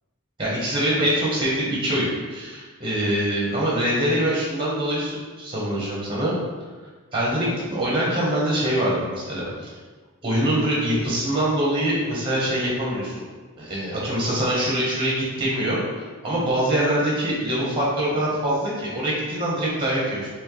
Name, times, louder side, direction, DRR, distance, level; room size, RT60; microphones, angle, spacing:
voice 1, 0.4-6.3 7.1-9.7 10.2-13.2 13.6-20.3, right 1 dB, 25° right, -5 dB, 1.2 m, -24 dB
4.3 x 3.1 x 3.2 m, 1.4 s
head